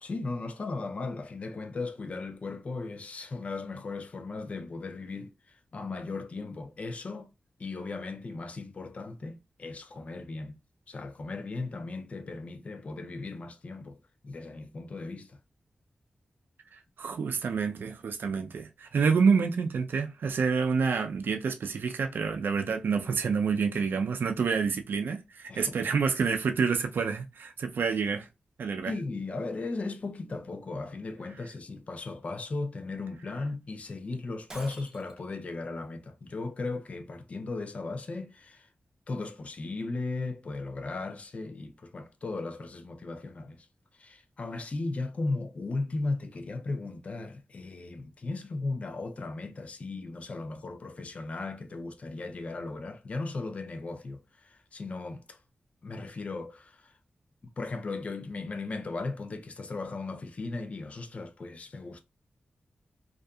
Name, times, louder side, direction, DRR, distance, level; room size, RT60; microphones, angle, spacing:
voice 1, 0.0-7.3 7.6-10.6 10.9-15.4 25.5-25.8 28.8-38.7 39.1-43.7 43.9-55.4 55.8-56.9 57.6-62.0, left 3 dB, 40° left, 0.4 m, -37 dB
voice 2, 17.0-28.3 28.6-28.9, right 5 dB, 75° right, 0.4 m, -28 dB
Shatter, 34.5-35.3, right 1 dB, 20° right, 0.5 m, -47 dB
2.7 x 2.4 x 2.2 m
wide cardioid pair, 155°, 3 cm